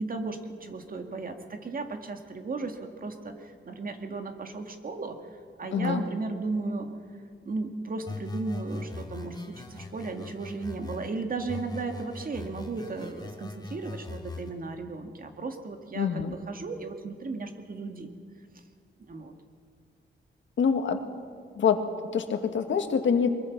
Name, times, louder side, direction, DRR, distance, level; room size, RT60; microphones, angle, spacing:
voice 1, 0.0-5.2 5.6-6.9 7.4-18.1 19.1-19.3, right 3 dB, 50° right, 6 dB, 2.0 m, -35 dB
voice 2, 5.7-6.0 16.0-16.3 20.6-21.0 21.6-21.9 22.1-23.3, left 6 dB, 80° left, 7 dB, 1.8 m, -25 dB
sound 1, 8.1-11.1 11.5-14.5, left 3 dB, 20° left, 2.3 m, -40 dB
23.5 x 22.0 x 6.0 m, 2.2 s
wide cardioid pair, 125°, 19 cm